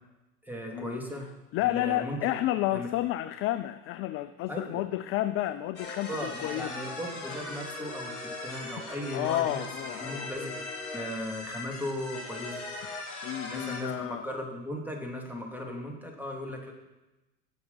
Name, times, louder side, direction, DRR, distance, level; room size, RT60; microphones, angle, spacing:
voice 1, 0.4-1.3 1.6-2.2 2.7-2.9 4.5-4.8 6.1-9.6 10.0-10.6 10.9-12.6 13.4-16.7, equal, 5° right, 1 dB, 2.9 m, -37 dB
voice 2, 1.5-6.7 9.1-10.3 13.2-14.2, left 14 dB, 30° left, 11 dB, 0.4 m, -31 dB
sound 1, 5.8-13.8, left 2 dB, 70° left, 3.2 m, -39 dB
17.0 x 6.6 x 5.7 m, 1.0 s
figure-of-eight pair, 70°, 47 cm